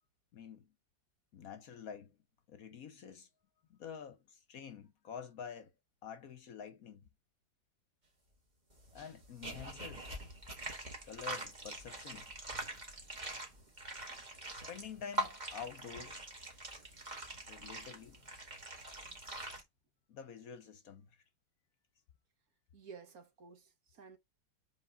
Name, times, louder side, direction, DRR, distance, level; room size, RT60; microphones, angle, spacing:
voice 1, 0.3-0.7 1.3-2.2 2.5-3.3 3.7-5.7 6.0-7.0 8.9-10.1 11.1-12.3 14.5-16.2 17.5-18.2 20.1-21.2, left 7 dB, 60° left, 1.1 m, -48 dB
sound 1, 8.7-19.6, right 1 dB, 25° right, 1.9 m, -44 dB
voice 2, 22.7-24.2, right 5 dB, 55° right, 1.7 m, -53 dB
4.6 x 4.2 x 5.5 m
omnidirectional pair, 1.9 m